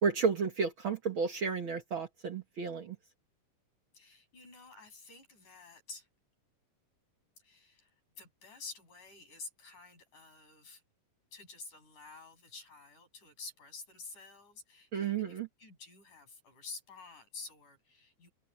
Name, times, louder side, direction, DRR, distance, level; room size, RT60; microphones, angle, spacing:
voice 1, 0.0-3.0 14.9-15.5, right 5 dB, 50° right, 1.8 m, -32 dB
voice 2, 3.9-6.1 7.4-10.8 11.3-18.3, left 4 dB, 80° left, 9.3 m, -50 dB
open air
omnidirectional pair, 3.5 m